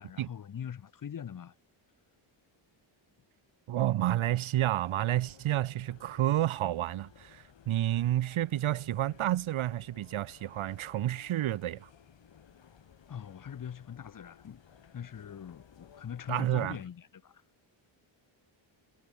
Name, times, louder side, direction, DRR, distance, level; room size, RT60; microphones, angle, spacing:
voice 1, 0.0-1.5 13.1-14.6 14.9-17.4, left 8 dB, 40° left, 1.0 m, -42 dB
voice 2, 3.7-11.9 16.3-16.8, right 13 dB, 70° right, 0.9 m, -30 dB
sound 1, 4.7-16.9, left 8 dB, 60° left, 6.7 m, -58 dB
wide cardioid pair, 145°, 50 cm